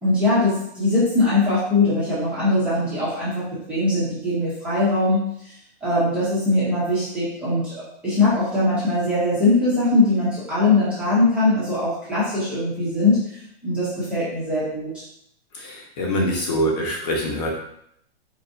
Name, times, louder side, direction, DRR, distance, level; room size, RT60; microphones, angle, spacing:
voice 1, 0.0-3.4 3.7-5.2 5.8-7.7 8.0-13.2 13.6-14.9, left 2 dB, 5° right, -13 dB, 0.9 m, -21 dB
voice 2, 15.5-17.6, equal, 40° left, -1 dB, 1.2 m, -24 dB
4.5 x 3.2 x 2.6 m, 0.72 s
hypercardioid pair, 170°, 32 cm